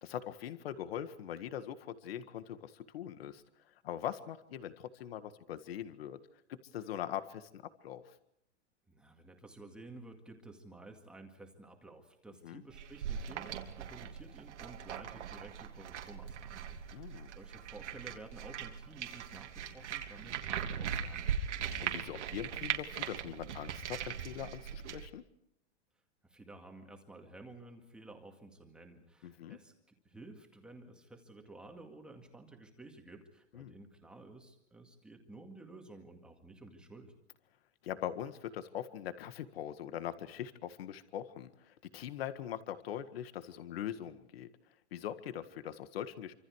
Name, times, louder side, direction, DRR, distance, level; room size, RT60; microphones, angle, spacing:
voice 1, 0.0-6.2 6.5-8.0 12.4-12.6 16.9-17.3 21.8-25.2 29.2-29.6 33.5-33.7 37.8-44.5 44.9-46.3, left 10 dB, 55° left, 10 dB, 1.8 m, -42 dB
voice 2, 8.9-21.4 26.2-37.1, right 2 dB, 5° right, 2 dB, 2.1 m, -53 dB
sound 1, 12.7-25.1, right 8 dB, 80° right, 3.1 m, -40 dB
27.5 x 26.0 x 4.8 m, 0.78 s
supercardioid pair, 180°, 35 cm